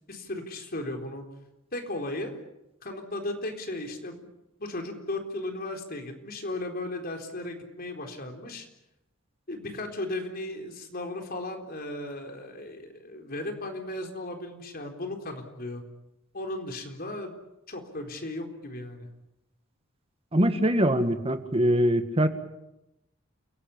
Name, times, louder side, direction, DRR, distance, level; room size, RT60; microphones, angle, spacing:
voice 1, 0.1-1.3 1.7-2.4 2.8-4.3 4.6-8.7 9.5-15.8 16.3-17.3 17.7-19.1, left 1 dB, 50° left, 4 dB, 4.1 m, -36 dB
voice 2, 20.3-22.3, equal, 30° right, 8 dB, 1.9 m, -23 dB
29.5 x 17.5 x 8.7 m, 0.91 s
head